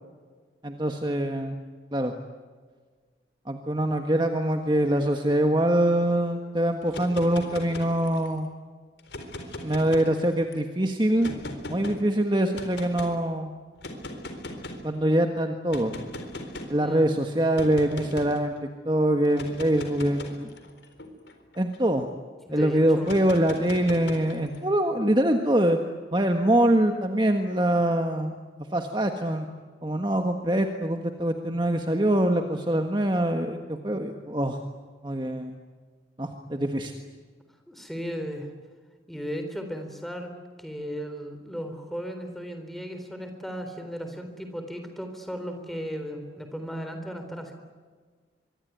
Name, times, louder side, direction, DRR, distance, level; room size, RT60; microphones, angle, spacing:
voice 1, 0.6-1.6 1.9-2.1 3.5-8.5 9.6-11.3 11.7-13.5 14.8-15.9 16.7-20.5 21.6-22.1 22.5-25.8 26.1-28.3 28.7-29.5 29.8-34.6 35.0-35.6 36.2-36.9, right 1 dB, 25° right, 4 dB, 1.5 m, -24 dB
sound 1, 6.8-8.4 9.0-10.5 11.2-12.0 12.5-13.1 13.8-14.9 15.7-16.8 17.6-18.4 19.3-22.1 23.0-24.6, left 1 dB, 75° left, 3.9 m, -39 dB
voice 2, 22.5-23.1 37.7-38.5 39.1-40.3 40.6-47.5, equal, ahead, 6 dB, 3.9 m, -35 dB
25.0 x 24.5 x 9.3 m, 1.5 s
head